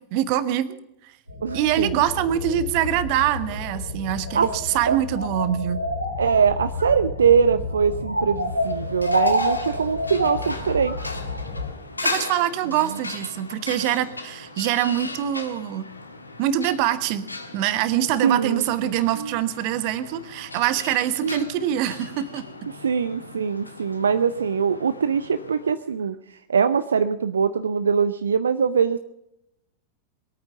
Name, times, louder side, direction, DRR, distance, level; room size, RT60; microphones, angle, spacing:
voice 1, 0.1-0.7 1.0-1.1 1.5-5.9 12.0-15.9 16.4-17.3 17.5-22.4, right 11 dB, 45° right, 14 dB, 1.2 m, -24 dB
sound 1, 1.3-11.7, left 1 dB, 90° right, 3.9 m, -29 dB
voice 2, 1.4-2.0 4.3-4.5 4.9-5.0 6.2-11.1 18.2-19.4 21.2-21.4 22.7-29.0, right 6 dB, 70° right, 12 dB, 0.6 m, -22 dB
sound 2, 8.3-25.8, left 2 dB, 80° left, 1.6 m, -37 dB
21.5 x 9.1 x 7.1 m, 0.84 s
figure-of-eight pair, 90°, 0 cm